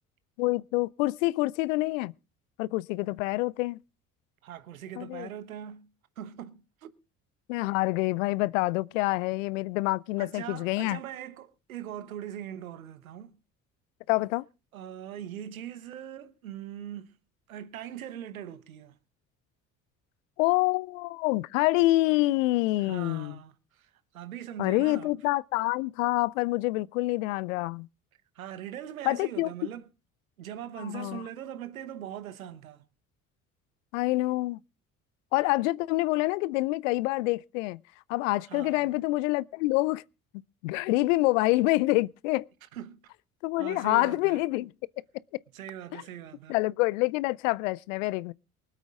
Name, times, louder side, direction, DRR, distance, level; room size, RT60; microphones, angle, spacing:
voice 1, 0.4-2.1 2.6-3.8 5.0-5.3 7.5-11.0 14.1-14.4 20.4-23.4 24.6-27.9 29.1-29.5 30.8-31.2 33.9-34.6 35.3-37.8 38.1-40.0 40.6-42.5 43.4-44.7 45.9-46.0 46.5-48.3, left 20 dB, 65° left, 0.6 m, -27 dB
voice 2, 4.4-5.9 6.2-6.9 10.2-13.4 14.7-17.1 17.5-19.0 22.8-25.1 28.3-29.9 30.4-32.9 38.5-38.9 42.7-43.0 43.6-44.4 45.5-46.6, right 10 dB, 80° right, 1.2 m, -41 dB
24.0 x 8.3 x 3.6 m
figure-of-eight pair, 55°, 41 cm